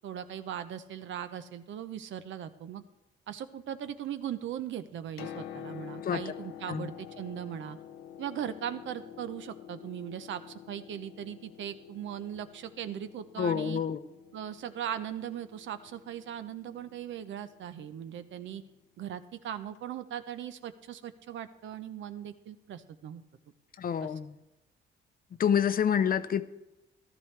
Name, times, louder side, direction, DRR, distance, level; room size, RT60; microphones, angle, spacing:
voice 1, 0.0-2.8 3.3-7.8 8.2-13.8 14.3-18.6 19.0-23.2 24.0-24.1, right 10 dB, 70° right, 11 dB, 0.8 m, -39 dB
Piano, 4.9-18.7 19.8-19.9, left 10 dB, 90° left, 0.7 m, -48 dB
voice 2, 13.4-14.0 23.8-24.4 25.4-26.4, left 8 dB, 45° left, 12 dB, 0.7 m, -27 dB
14.0 x 13.0 x 3.3 m, 0.99 s
cardioid pair, 90°, 20 cm